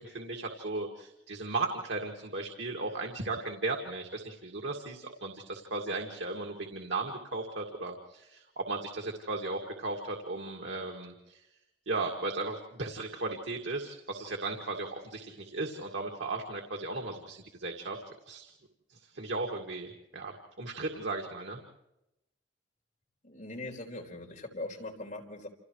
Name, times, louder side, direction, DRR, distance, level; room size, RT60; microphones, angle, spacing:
voice 1, 0.0-11.4 11.9-18.0 18.3-18.5 18.9-21.6, right 3 dB, 90° right, 1 dB, 2.1 m, -36 dB
voice 2, 23.2-25.5, left 2 dB, 45° left, -1 dB, 4.5 m, -41 dB
29.5 x 28.0 x 3.2 m, 0.90 s
head